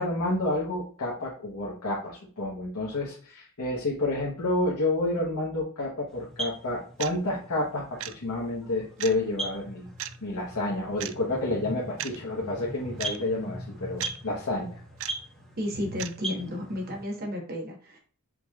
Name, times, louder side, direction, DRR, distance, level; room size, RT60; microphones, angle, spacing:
voice 1, 0.0-9.9 10.2-14.8, left 2 dB, 85° left, -4 dB, 1.0 m, -29 dB
sound 1, 6.1-17.0, right 1 dB, 5° left, 1.3 m, -40 dB
sound 2, 7.0-7.2 8.0-8.1 9.0-9.1 10.0-10.2 11.0-11.1 12.0-12.2 13.0-13.2 14.0-14.2 15.0-15.1 16.0-16.2, right 12 dB, 65° right, 0.3 m, -35 dB
voice 2, 15.6-18.0, left 1 dB, 45° right, 1 dB, 1.2 m, -33 dB
5.0 x 3.1 x 2.4 m, 0.44 s
head